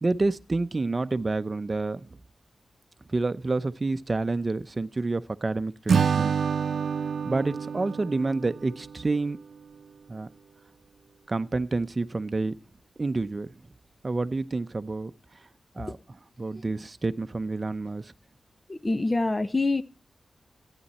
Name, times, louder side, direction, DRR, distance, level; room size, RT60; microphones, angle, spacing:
voice 1, 0.0-2.1 3.1-6.3 7.2-9.4 10.1-10.3 11.3-12.5 13.0-13.5 14.0-15.1 15.8-18.1, right 3 dB, 35° right, 0.7 m, -28 dB
Acoustic guitar / Strum, 5.9-9.2, right 6 dB, 75° right, 0.6 m, -27 dB
voice 2, 18.7-19.8, left 3 dB, 25° left, 0.8 m, -25 dB
14.0 x 9.9 x 4.3 m
wide cardioid pair, 80°, 0 cm